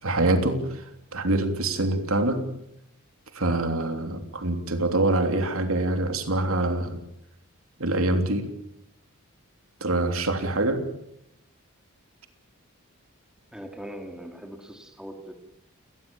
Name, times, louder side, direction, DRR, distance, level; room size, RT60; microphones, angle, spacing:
voice 1, 0.0-0.8 1.1-2.5 3.3-7.0 7.8-8.4 9.8-10.8, right 2 dB, 70° right, 7 dB, 3.3 m, -25 dB
voice 2, 13.5-15.3, equal, 5° right, 5 dB, 2.7 m, -40 dB
29.5 x 20.0 x 7.2 m, 0.78 s
head